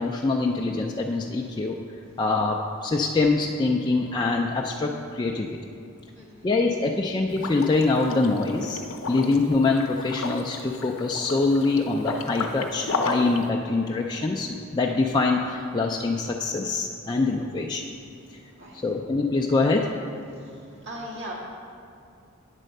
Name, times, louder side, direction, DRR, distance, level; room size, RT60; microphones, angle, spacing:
voice 1, 0.0-1.8 2.2-5.5 6.4-8.8 9.1-18.0 18.8-19.9, left 3 dB, 20° left, 0 dB, 0.3 m, -24 dB
voice 2, 6.0-6.5 18.3-18.8 20.2-21.3, right 1 dB, 60° right, -4 dB, 2.0 m, -41 dB
Liquid, 7.3-13.4, left 4 dB, 70° left, 0.7 m, -33 dB
9.1 x 4.3 x 6.5 m, 2.5 s
head